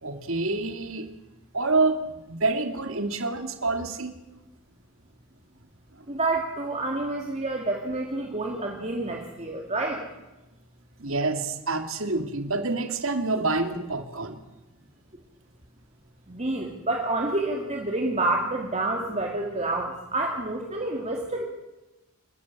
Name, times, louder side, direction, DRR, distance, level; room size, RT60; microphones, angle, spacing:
voice 1, 0.0-1.1 1.5-4.1 6.1-6.2 11.0-14.4, right 3 dB, 65° right, 8 dB, 2.3 m, -27 dB
voice 2, 6.1-10.1 16.3-21.4, right 2 dB, 30° right, 1 dB, 2.4 m, -28 dB
28.5 x 13.5 x 8.4 m, 1.1 s
head